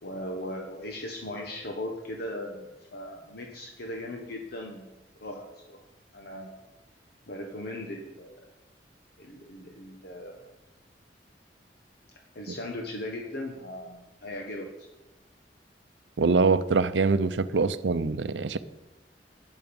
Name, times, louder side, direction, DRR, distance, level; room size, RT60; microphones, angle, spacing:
voice 1, 0.0-5.8 6.1-6.6 7.3-8.5 9.2-10.5 12.3-14.9, left 1 dB, 60° left, 1 dB, 1.3 m, -38 dB
voice 2, 16.2-18.6, right 4 dB, 90° right, 13 dB, 0.6 m, -24 dB
11.5 x 9.5 x 5.3 m, 1.0 s
head